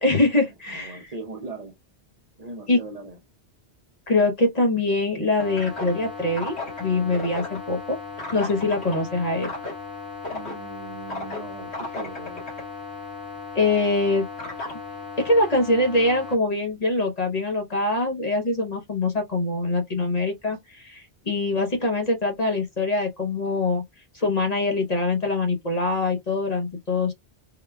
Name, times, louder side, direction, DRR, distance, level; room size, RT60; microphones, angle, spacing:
voice 1, 0.0-1.1 2.7-2.8 4.1-8.0 8.3-9.5 13.5-14.2 15.2-23.8 24.1-27.1, left 2 dB, 40° left, 0.8 m, -23 dB
voice 2, 0.7-1.8 2.4-3.2 10.3-12.5, right 3 dB, 40° right, 0.7 m, -39 dB
sound 1, 5.4-16.3, left 3 dB, 75° left, 1.8 m, -35 dB
3.8 x 2.2 x 3.3 m
omnidirectional pair, 1.1 m